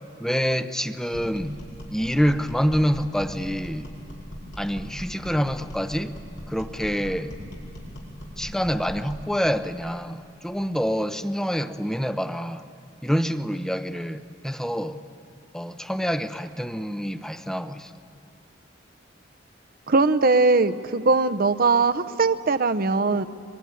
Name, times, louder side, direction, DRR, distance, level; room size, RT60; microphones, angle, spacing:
voice 1, 0.2-1.6 1.9-3.9 4.6-6.1 6.5-7.3 8.4-12.6 13.0-15.0 15.5-17.9, equal, 5° left, 10 dB, 0.7 m, -26 dB
sound 1, 1.1-9.3, equal, 85° left, 5.4 m, -39 dB
voice 2, 19.9-23.2, right 3 dB, 50° right, 11 dB, 0.8 m, -20 dB
24.0 x 22.5 x 9.6 m, 2.5 s
head